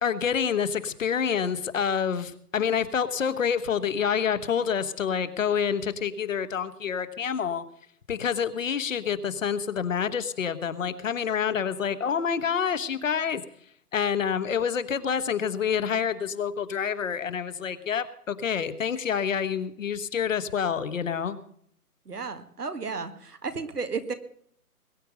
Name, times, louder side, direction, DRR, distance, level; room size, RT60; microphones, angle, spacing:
voice 1, 0.0-7.6 8.1-13.4 13.9-21.4, left 7 dB, 55° left, 11 dB, 1.4 m, -27 dB
voice 2, 22.1-24.1, right 4 dB, 85° right, 9 dB, 2.0 m, -33 dB
21.5 x 9.1 x 5.2 m, 0.65 s
figure-of-eight pair, 150°, 46 cm